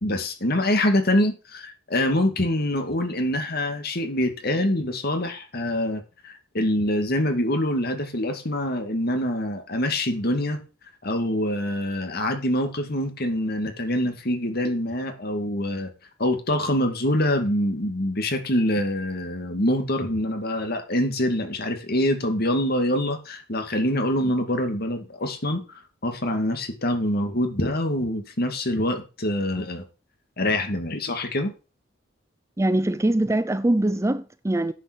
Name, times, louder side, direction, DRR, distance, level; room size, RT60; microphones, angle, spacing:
voice 1, 0.0-10.6 11.0-15.9 16.2-25.6 26.0-29.8 30.4-31.5, left 1 dB, 55° left, 2.3 m, -25 dB
voice 2, 32.6-34.7, right 1 dB, 15° right, 0.5 m, -22 dB
10.0 x 6.8 x 6.3 m
head